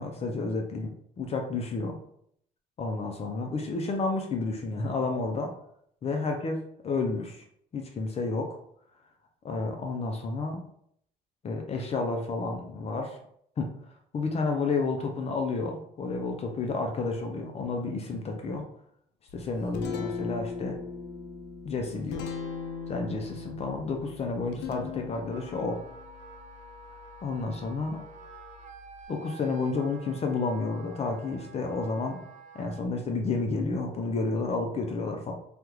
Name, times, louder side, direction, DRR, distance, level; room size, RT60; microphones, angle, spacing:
voice 1, 0.0-2.0 2.8-5.5 6.0-7.4 7.7-8.6 9.4-10.6 11.4-13.2 13.6-13.7 14.1-18.6 19.3-20.8 21.6-22.3 22.9-25.8 27.2-28.0 29.1-32.2 32.5-35.3, left 3 dB, 40° left, 3 dB, 0.5 m, -31 dB
Guitar, 19.3-29.1, left 5 dB, 90° left, 0.4 m, -40 dB
Wind instrument woodwind instrument, 25.2-32.9, right 4 dB, 45° right, 0.5 m, -49 dB
3.4 x 2.3 x 3.0 m, 0.69 s
cardioid pair, 110°, 17 cm